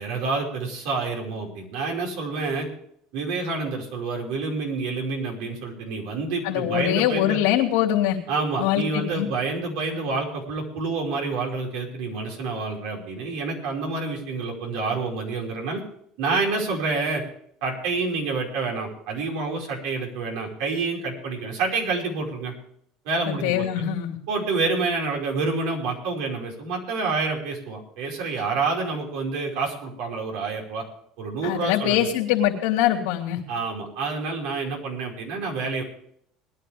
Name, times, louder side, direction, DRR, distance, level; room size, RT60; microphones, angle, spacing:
voice 1, 0.0-2.7 3.1-7.4 8.3-15.8 16.2-17.2 17.6-22.5 23.1-23.7 24.3-30.8 31.2-32.1 33.5-35.8, right 3 dB, 75° right, 0 dB, 5.2 m, -28 dB
voice 2, 6.4-8.2 8.6-9.3 23.3-24.2 31.4-33.4, left 12 dB, 90° left, -3 dB, 2.8 m, -23 dB
20.5 x 11.0 x 3.5 m, 0.68 s
supercardioid pair, 115°, 0 cm